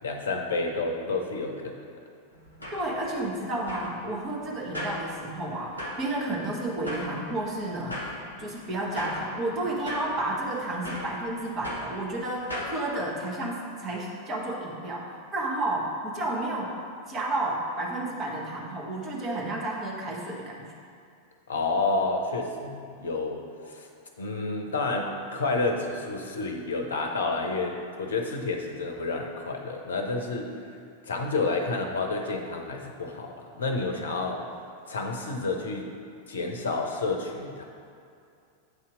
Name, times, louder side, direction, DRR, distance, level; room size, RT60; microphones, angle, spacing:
voice 1, 0.0-1.8 21.5-23.9 24.2-30.6 31.0-34.5 34.9-35.9 36.3-37.6, left 3 dB, 70° left, 3 dB, 0.6 m, -30 dB
sound 1, 2.3-12.8, left 1 dB, 85° right, 1.0 m, -40 dB
voice 2, 2.7-15.1 15.3-16.7 17.1-20.6, right 2 dB, 30° right, -3 dB, 1.2 m, -31 dB
8.0 x 2.8 x 4.9 m, 2.4 s
figure-of-eight pair, 90°, 0 cm